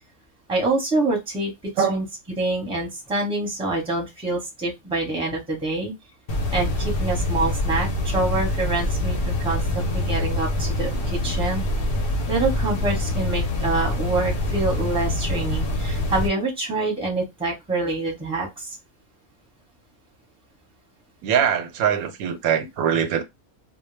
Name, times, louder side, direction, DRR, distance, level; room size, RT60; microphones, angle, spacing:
voice 1, 0.5-1.5 1.8-2.0 2.4-5.9 6.5-11.6 12.3-18.8, right 2 dB, 5° right, 0.8 m, -26 dB
sound 1, 6.3-16.3, left 1 dB, 55° left, 0.7 m, -25 dB
voice 2, 21.2-23.2, right 8 dB, 90° right, 1.1 m, -22 dB
2.2 x 2.1 x 3.2 m
omnidirectional pair, 1.4 m